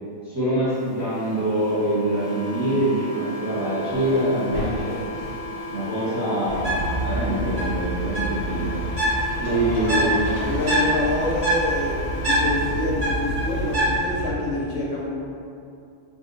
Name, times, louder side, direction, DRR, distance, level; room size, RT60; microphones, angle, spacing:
voice 1, 0.2-5.0 5.7-8.7 9.4-10.2, right 1 dB, 20° right, -11 dB, 0.5 m, -24 dB
sound 1, 1.1-13.1, equal, 90° left, 1.1 m, -35 dB
sound 2, 3.5-6.0, left 1 dB, 80° right, 1.4 m, -36 dB
voice 2, 5.9-6.4 9.4-10.1 10.4-15.1, left 2 dB, 65° left, -4 dB, 0.8 m, -27 dB
Bird, 6.5-14.3, right 1 dB, 45° right, 1.2 m, -25 dB
2.6 x 2.4 x 3.8 m, 2.6 s
omnidirectional pair, 1.6 m